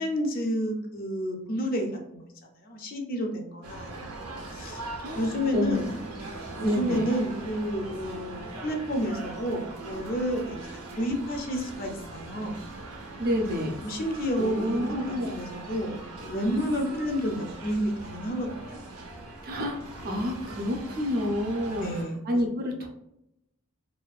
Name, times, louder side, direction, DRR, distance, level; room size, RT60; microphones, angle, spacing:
voice 1, 0.0-2.3 2.6-4.9 5.2-6.0 6.6-10.6 11.0-12.6 13.8-18.8 21.6-22.2, equal, 40° left, 3 dB, 0.4 m, -30 dB
sound 1, 3.6-22.0, right 2 dB, 90° right, 0.6 m, -41 dB
voice 2, 5.0-5.8 6.6-7.1 13.2-13.8 14.4-15.3 19.4-21.9 22.2-22.9, left 1 dB, 40° right, 2 dB, 0.4 m, -29 dB
2.5 x 2.2 x 2.3 m, 0.81 s
head